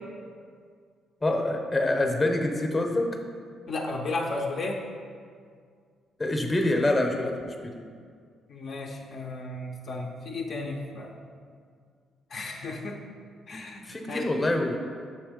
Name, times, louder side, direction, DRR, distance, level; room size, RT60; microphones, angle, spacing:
voice 1, 1.2-3.1 6.2-7.5 13.9-14.8, left 1 dB, 25° left, 3 dB, 0.7 m, -25 dB
voice 2, 3.7-4.8 8.5-11.2 12.3-13.0 13.5-14.5, left 2 dB, 55° left, 0 dB, 0.5 m, -34 dB
6.6 x 3.1 x 5.0 m, 2.1 s
cardioid pair, 90°, 0 cm